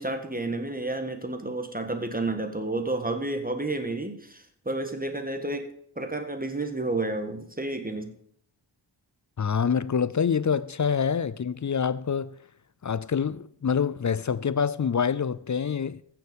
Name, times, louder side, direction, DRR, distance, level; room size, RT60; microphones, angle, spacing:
voice 1, 0.0-8.2, right 2 dB, 15° right, 1.6 m, -31 dB
voice 2, 9.4-12.3 12.8-16.0, left 6 dB, 40° left, 0.5 m, -26 dB
14.5 x 6.9 x 5.3 m
wide cardioid pair, 60°, 49 cm